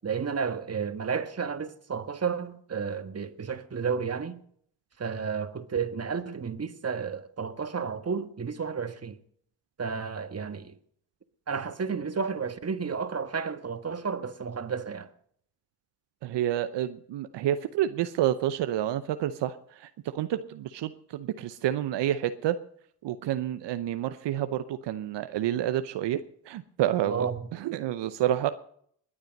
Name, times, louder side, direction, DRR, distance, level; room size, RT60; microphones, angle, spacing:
voice 1, 0.0-4.4 5.0-9.2 9.8-10.7 11.5-15.1 27.0-27.5, right 6 dB, 35° right, 1.6 m, -32 dB
voice 2, 16.2-22.6 23.0-28.5, right 12 dB, 75° right, 0.8 m, -29 dB
20.5 x 8.8 x 5.3 m
supercardioid pair, 55°, 43 cm